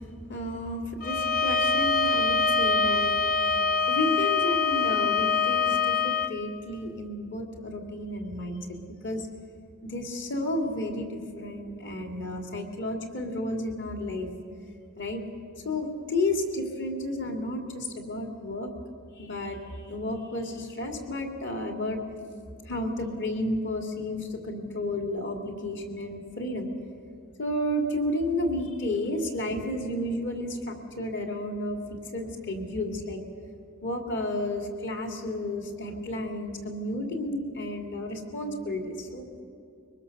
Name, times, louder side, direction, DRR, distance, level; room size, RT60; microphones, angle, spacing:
voice 1, 0.3-3.2 3.9-9.3 9.8-14.3 15.0-15.2 15.6-18.7 19.2-19.6 19.9-22.0 22.7-26.7 27.4-31.8 32.1-33.2 33.8-39.3, left 1 dB, 55° left, 3 dB, 2.9 m, -32 dB
Bowed string instrument, 1.0-6.3, left 4 dB, 40° left, 1.3 m, -24 dB
23.5 x 20.0 x 6.9 m, 2.6 s
head